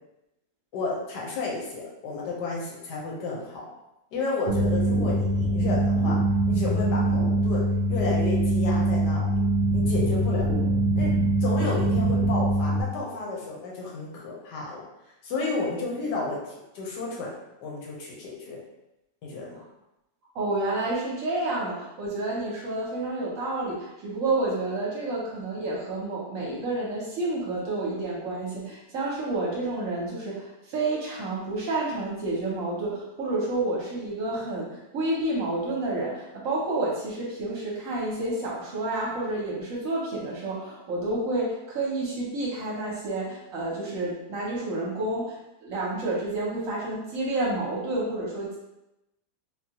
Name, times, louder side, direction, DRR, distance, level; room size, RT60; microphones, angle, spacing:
voice 1, 0.7-3.7 4.1-6.2 6.5-9.4 9.7-10.5 11.0-11.1 11.4-14.8 15.2-17.3 17.6-18.6 19.2-19.6, left 3 dB, 80° left, -3 dB, 1.4 m, -32 dB
sound 1, 4.5-12.8, right 1 dB, 80° right, 0.5 m, -23 dB
voice 2, 20.3-48.6, right 2 dB, 60° right, -4 dB, 1.0 m, -29 dB
3.7 x 2.2 x 2.8 m, 0.91 s
omnidirectional pair, 1.8 m